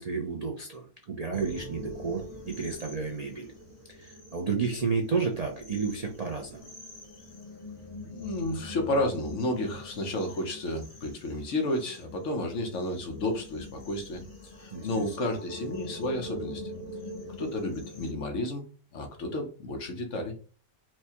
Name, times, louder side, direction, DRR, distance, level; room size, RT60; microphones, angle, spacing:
voice 1, 0.0-3.5 3.9-6.7 14.7-15.2, right 5 dB, 60° right, 1 dB, 0.4 m, -32 dB
sound 1, 1.3-18.1, equal, 30° left, 1.1 m, -44 dB
voice 2, 8.0-14.2 14.5-16.7 17.4-18.7 18.9-20.3, left 1 dB, 60° left, 3 dB, 1.2 m, -31 dB
4.5 x 2.2 x 2.9 m, 0.38 s
omnidirectional pair, 1.5 m